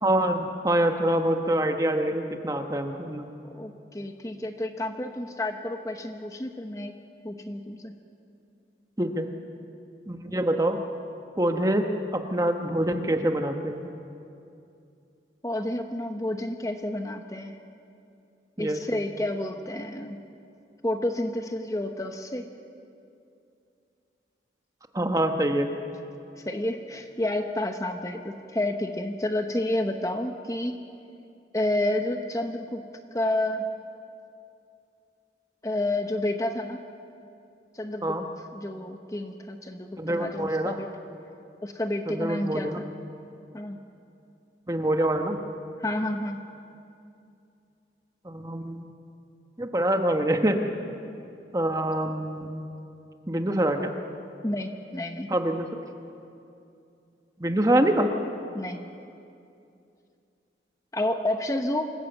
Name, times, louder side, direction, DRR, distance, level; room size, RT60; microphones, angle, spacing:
voice 1, 0.0-3.3 9.0-9.3 10.1-10.8 11.4-11.9 12.1-13.9 18.6-18.8 24.9-25.7 38.0-38.2 40.0-40.8 42.1-42.8 44.7-45.4 48.2-48.8 49.6-50.6 51.5-52.7 53.3-53.9 55.3-55.7 57.4-58.1, right 1 dB, 20° right, 5 dB, 1.1 m, -25 dB
voice 2, 3.5-6.9 7.2-7.9 15.4-17.5 18.6-20.2 20.8-22.5 26.4-30.8 31.5-32.8 33.1-33.7 35.6-36.8 37.7-38.2 38.5-40.9 41.6-42.9 43.5-43.8 45.8-46.4 54.4-55.3 58.5-58.9 60.9-61.9, left 1 dB, 20° left, 6 dB, 0.9 m, -30 dB
26.0 x 14.5 x 8.0 m, 2.6 s
head